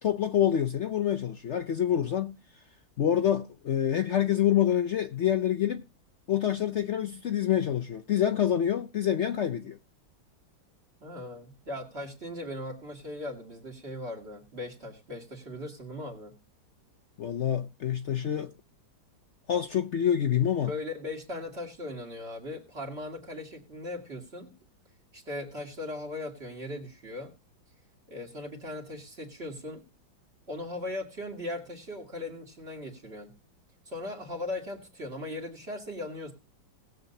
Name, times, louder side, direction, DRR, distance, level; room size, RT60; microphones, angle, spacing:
voice 1, 0.0-2.4 3.0-5.8 6.3-9.8 17.2-18.5 19.5-20.7, left 10 dB, 85° left, 0.6 m, -26 dB
voice 2, 11.0-16.4 20.6-24.5 25.1-27.3 28.1-29.8 30.5-33.3 33.8-36.3, left 1 dB, 30° right, 2.7 m, -38 dB
19.5 x 7.8 x 2.7 m
omnidirectional pair, 2.1 m